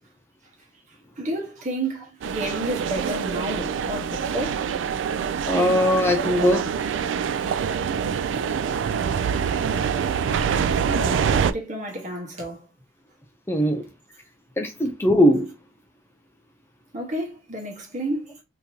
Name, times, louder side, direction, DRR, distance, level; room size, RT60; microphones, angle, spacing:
voice 1, 0.9-4.7 7.5-7.8 10.9-12.7 16.9-18.4, right 1 dB, 40° right, 1.2 m, -31 dB
sound 1, 2.2-11.5, right 7 dB, 70° right, 0.3 m, -25 dB
voice 2, 5.5-6.6 13.5-13.8 14.6-15.5, equal, 10° left, 0.5 m, -20 dB
3.7 x 2.9 x 2.7 m
head